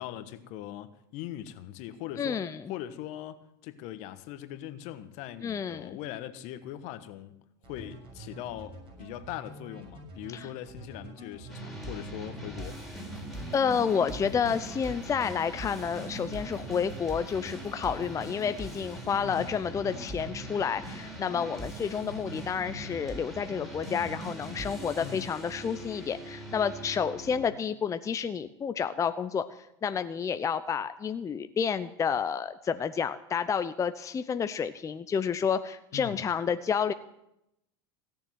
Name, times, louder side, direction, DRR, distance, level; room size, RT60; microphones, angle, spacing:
voice 1, 0.0-2.4 2.7-7.4 7.7-12.8 19.2-19.5 25.0-25.3 35.9-36.2, left 12 dB, 60° left, 1.3 m, -41 dB
voice 2, 2.2-2.7 5.4-5.9 10.3-10.5 13.5-29.4 29.8-36.9, left 7 dB, 25° left, 0.7 m, -30 dB
sound 1, 7.6-22.0 22.4-23.0 23.3-24.2 24.5-25.1, right 2 dB, 40° right, 6.9 m, -47 dB
sound 2, 11.5-27.5, right 1 dB, ahead, 4.4 m, -41 dB
17.0 x 7.2 x 9.1 m
hypercardioid pair, 95°, 14 cm